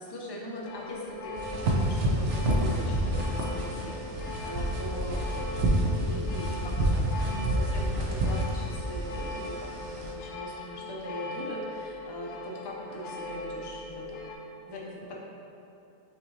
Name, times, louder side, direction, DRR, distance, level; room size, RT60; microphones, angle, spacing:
voice 1, 0.0-4.0 4.4-14.3 14.7-15.1, equal, 35° left, -3 dB, 0.4 m, -40 dB
sound 1, 0.7-14.4, left 2 dB, 80° left, 0.9 m, -40 dB
sound 2, 1.4-10.1, right 1 dB, 90° right, 0.9 m, -29 dB
5.7 x 2.9 x 2.7 m, 2.7 s
omnidirectional pair, 1.2 m